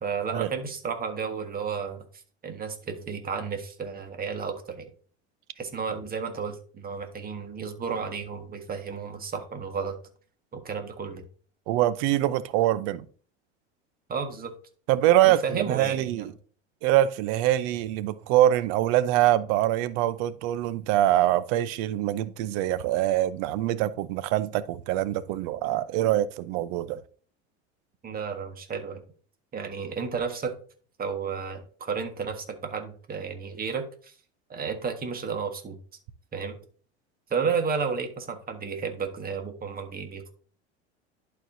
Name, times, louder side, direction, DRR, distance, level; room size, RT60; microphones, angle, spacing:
voice 1, 0.0-2.0 2.4-4.9 5.6-10.0 10.5-11.2 14.1-14.5 15.2-16.3 28.0-29.0 29.5-30.5 31.0-34.1 34.5-35.8 36.3-36.6 37.3-40.3, right 5 dB, 25° right, 1.5 m, -32 dB
voice 2, 11.7-13.1 14.9-16.3 16.8-27.0, right 13 dB, 60° right, 0.7 m, -24 dB
11.0 x 4.6 x 2.7 m
hypercardioid pair, 90°, 34 cm